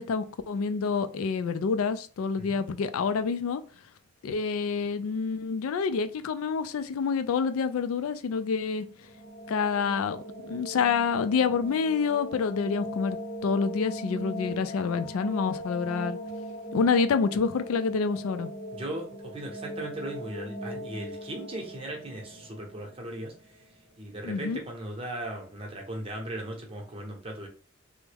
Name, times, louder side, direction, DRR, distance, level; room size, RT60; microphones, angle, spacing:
voice 1, 0.0-3.6 4.2-8.8 9.5-13.2 13.4-16.2 16.7-18.5 24.2-24.6, left 5 dB, 85° left, 0.3 m, -27 dB
sound 1, 8.9-23.8, equal, 45° left, 0.8 m, -39 dB
voice 2, 18.7-23.6 24.0-27.5, right 1 dB, 25° right, 0.7 m, -38 dB
3.3 x 2.1 x 3.3 m
head